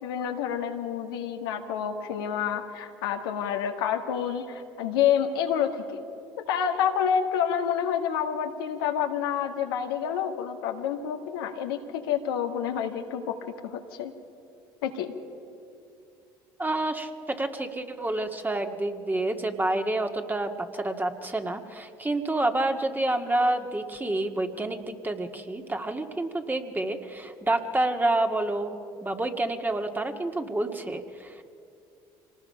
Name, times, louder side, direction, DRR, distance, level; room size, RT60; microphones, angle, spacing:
voice 1, 0.0-6.0 6.5-13.3 13.6-14.1 14.8-15.1, left 8 dB, 85° left, 4 dB, 1.7 m, -28 dB
voice 2, 16.6-31.4, right 2 dB, 15° right, 5 dB, 1.9 m, -28 dB
25.5 x 19.5 x 5.7 m, 2.6 s
hypercardioid pair, 70°, 12 cm